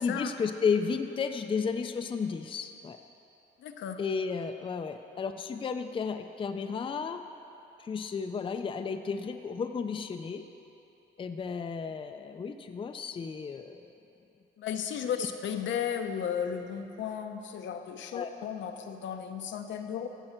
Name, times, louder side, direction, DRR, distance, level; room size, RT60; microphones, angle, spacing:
voice 1, 0.0-3.0 4.0-7.2 7.8-10.4 11.2-13.8 18.1-18.3, left 5 dB, 25° left, 7 dB, 0.4 m, -33 dB
voice 2, 3.6-4.0 14.6-20.1, left 8 dB, 75° left, 6 dB, 0.7 m, -34 dB
14.5 x 7.7 x 4.4 m, 2.8 s
cardioid pair, 120°, 19 cm